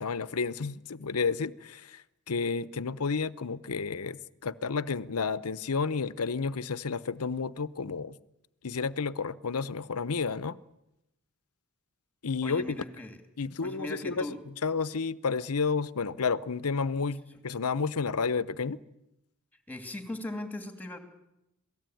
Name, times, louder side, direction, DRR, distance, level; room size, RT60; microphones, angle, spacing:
voice 1, 0.0-8.2 8.6-10.6 12.2-12.8 13.4-14.4 14.6-18.8, left 5 dB, 85° left, 0.8 m, -31 dB
voice 2, 12.4-13.2 13.6-14.4 17.3-17.4 19.7-21.0, left 2 dB, 10° left, 3.0 m, -39 dB
27.0 x 18.5 x 9.2 m
head